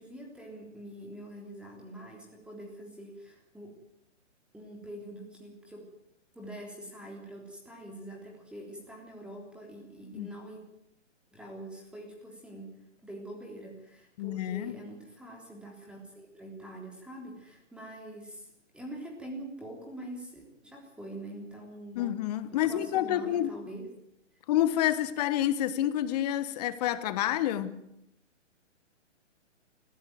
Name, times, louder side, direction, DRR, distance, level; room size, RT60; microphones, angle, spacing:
voice 1, 0.0-3.7 4.5-5.9 6.4-10.6 11.3-12.8 13.0-22.2 22.5-23.9, right 1 dB, 5° right, 3.5 m, -45 dB
voice 2, 14.2-14.7 21.9-23.5 24.5-27.8, left 12 dB, 35° left, 1.4 m, -28 dB
20.0 x 15.0 x 9.2 m
hypercardioid pair, 140°, 37 cm